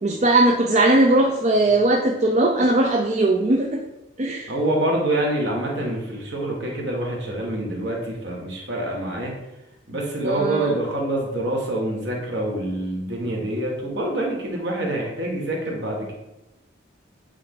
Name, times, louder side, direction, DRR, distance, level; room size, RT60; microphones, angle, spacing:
voice 1, 0.0-3.8 4.2-4.5 10.2-10.8, right 2 dB, 35° right, 1 dB, 0.4 m, -19 dB
voice 2, 4.5-9.3 9.9-16.1, right 1 dB, 60° right, -1 dB, 1.6 m, -26 dB
8.2 x 3.4 x 3.9 m, 0.94 s
head